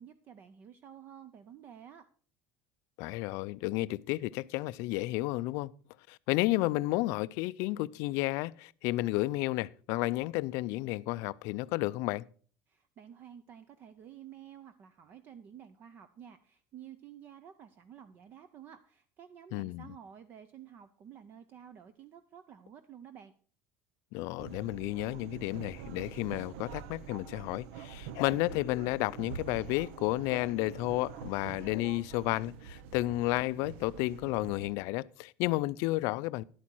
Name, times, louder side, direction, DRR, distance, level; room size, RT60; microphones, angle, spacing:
voice 1, 0.0-2.1 12.7-23.3, right 9 dB, 30° right, 0.5 m, -51 dB
voice 2, 3.0-5.7 6.1-12.2 19.5-19.9 24.1-36.4, left 19 dB, 55° left, 0.4 m, -32 dB
sound 1, 24.4-34.7, right 8 dB, 85° right, 0.7 m, -46 dB
11.0 x 8.4 x 4.5 m
cardioid pair, 175°, 6 cm